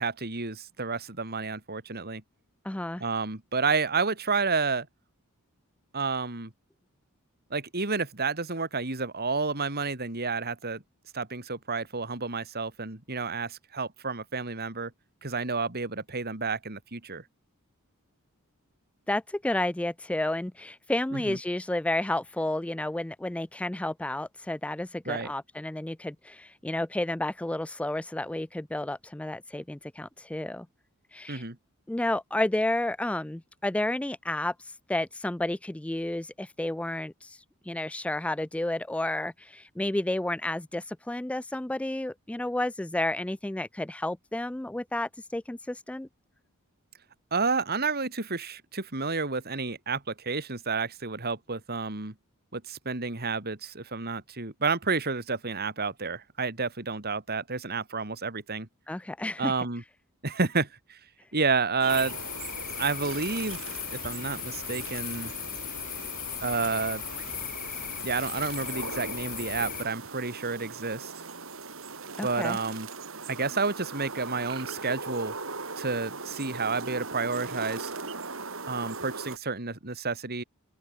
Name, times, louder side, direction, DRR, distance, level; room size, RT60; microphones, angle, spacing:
voice 1, 0.0-2.2 3.0-4.9 5.9-6.5 7.5-10.8 11.1-14.9 15.2-17.2 21.1-21.4 25.1-25.3 31.3-31.6 47.3-52.1 52.5-58.7 59.4-59.8 60.2-61.0 61.3-62.2 62.8-63.6 63.9-65.3 66.4-67.0 68.0-71.1 72.2-72.9 73.3-75.3 75.8-77.9 78.7-80.4, right 4 dB, 45° right, 2.8 m, -30 dB
voice 2, 2.6-3.0 19.1-30.7 31.1-31.4 31.9-46.1 58.9-59.5 72.2-72.6, left 1 dB, 5° left, 0.3 m, -31 dB
sound 1, 61.8-79.4, right 4 dB, 65° right, 4.2 m, -40 dB
sound 2, 61.9-69.8, left 10 dB, 40° left, 3.1 m, -37 dB
open air
head